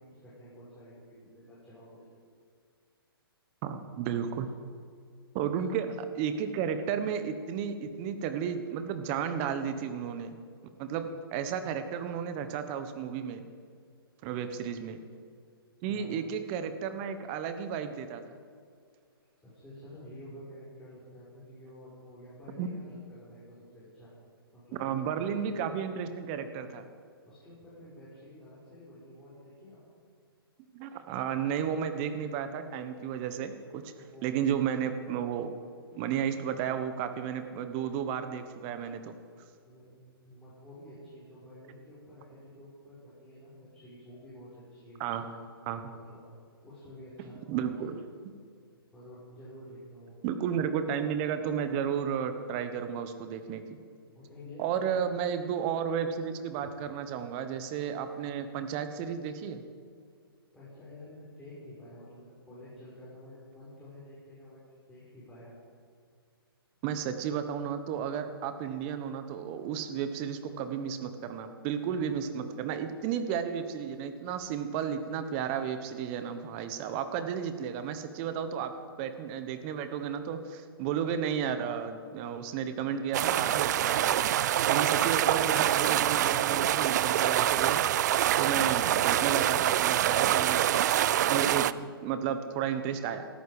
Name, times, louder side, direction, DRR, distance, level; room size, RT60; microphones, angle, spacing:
voice 1, 0.0-2.0 4.0-4.3 5.5-5.8 11.1-11.2 14.3-14.8 15.9-16.2 19.4-24.1 24.5-25.6 27.3-29.8 34.0-34.3 39.6-45.4 45.9-46.3 46.6-48.2 48.9-50.2 54.1-55.0 56.6-56.7 60.5-64.6 64.9-65.5, equal, 5° left, -11 dB, 5.1 m, -50 dB
voice 2, 3.6-4.5 5.3-5.9 6.2-10.4 10.8-13.4 14.2-15.0 15.8-18.2 22.6-22.7 24.8-26.9 30.7-33.9 34.2-35.5 35.9-39.2 45.0-45.3 45.7-45.8 47.5-48.0 50.2-53.6 54.6-59.6 66.8-78.7 79.0-87.8 88.4-93.3, right 8 dB, 30° right, 9 dB, 1.3 m, -33 dB
sound 1, 83.1-91.7, right 12 dB, 45° right, 0.5 m, -25 dB
19.0 x 14.0 x 5.0 m, 2.2 s
hypercardioid pair, 145°, 13 cm